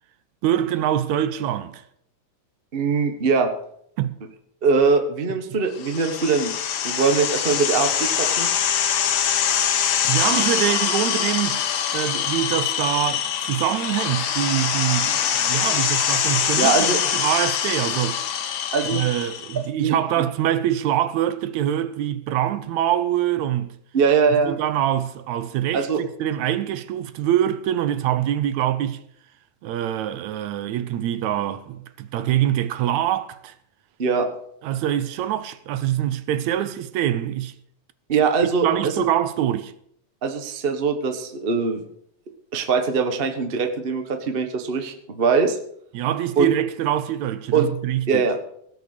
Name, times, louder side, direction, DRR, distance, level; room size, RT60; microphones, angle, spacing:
voice 1, 0.4-1.8 4.0-4.2 10.0-11.6 11.9-18.2 18.9-23.7 24.4-29.0 29.6-33.6 34.6-37.5 38.6-39.7 45.9-48.2, right 11 dB, 75° right, 2.0 m, -24 dB
voice 2, 2.7-3.5 4.6-6.5 6.8-8.5 16.6-17.0 18.7-19.0 19.8-20.0 23.9-24.6 25.7-26.0 34.0-34.3 38.1-38.9 40.2-41.8 42.5-45.6 46.4-46.5 47.5-47.7 48.1-48.4, right 5 dB, 60° right, 0.6 m, -21 dB
sound 1, 5.8-19.6, left 8 dB, 85° left, 2.7 m, -24 dB
17.5 x 6.9 x 6.7 m
omnidirectional pair, 3.5 m